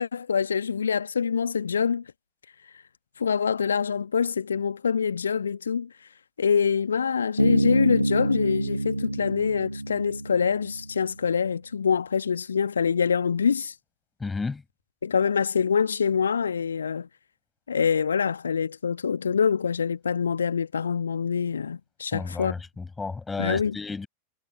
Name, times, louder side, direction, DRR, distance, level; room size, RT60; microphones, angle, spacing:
voice 1, 0.0-2.0 3.2-5.9 6.4-13.7 15.0-17.1 17.7-22.5 23.4-23.7, left 6 dB, 70° left, 1.5 m, -25 dB
Bass guitar, 7.4-11.0, right 2 dB, 85° right, 1.3 m, -26 dB
voice 2, 14.2-14.6 22.1-24.1, left 4 dB, 10° left, 7.0 m, -32 dB
figure-of-eight pair, 90°, 0 cm